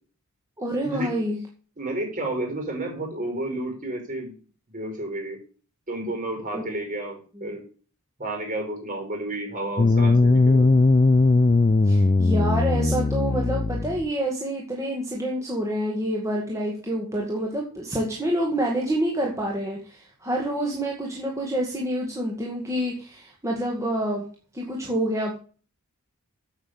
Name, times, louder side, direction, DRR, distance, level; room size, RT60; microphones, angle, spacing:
voice 1, 0.6-1.4 6.5-6.7 7.4-7.6 11.9-24.2 24.5-25.4, right 1 dB, 15° right, -2 dB, 2.1 m, -27 dB
voice 2, 1.8-4.3 4.7-5.4 5.9-7.6 8.2-10.7, right 1 dB, 40° right, 2 dB, 5.3 m, -31 dB
sound 1, 9.8-14.1, left 3 dB, 30° left, 0.4 m, -19 dB
8.8 x 7.4 x 8.2 m, 0.40 s
head